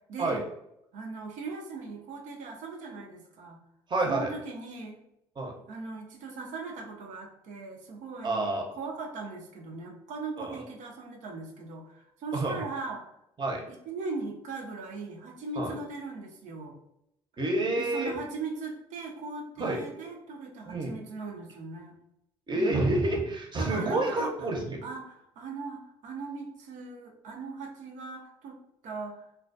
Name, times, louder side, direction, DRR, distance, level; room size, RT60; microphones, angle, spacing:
voice 1, 0.1-0.5 0.9-3.6 4.1-5.0 5.7-13.0 13.7-16.8 17.8-21.9 22.5-22.8 23.6-24.6 24.8-29.2, right 3 dB, 70° right, 1 dB, 0.5 m, -39 dB
voice 2, 3.9-4.3 5.4-5.5 8.2-8.6 10.4-10.6 12.3-12.6 13.4-13.6 15.6-15.7 17.4-18.1 19.6-19.8 20.7-20.9 22.5-24.8, right 2 dB, 35° right, 0 dB, 0.7 m, -28 dB
2.2 x 2.2 x 2.5 m, 0.80 s
supercardioid pair, 65°, 13 cm